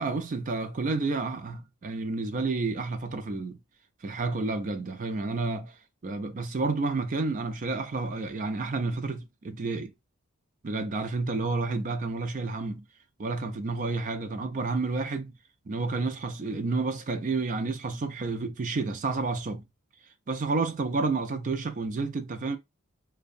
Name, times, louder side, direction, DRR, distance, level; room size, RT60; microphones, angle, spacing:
voice 1, 0.0-3.6 4.0-5.7 6.0-9.9 10.6-12.8 13.2-15.3 15.7-19.6 20.3-22.6, right 3 dB, 35° right, 0.3 m, -30 dB
2.6 x 2.1 x 2.5 m
head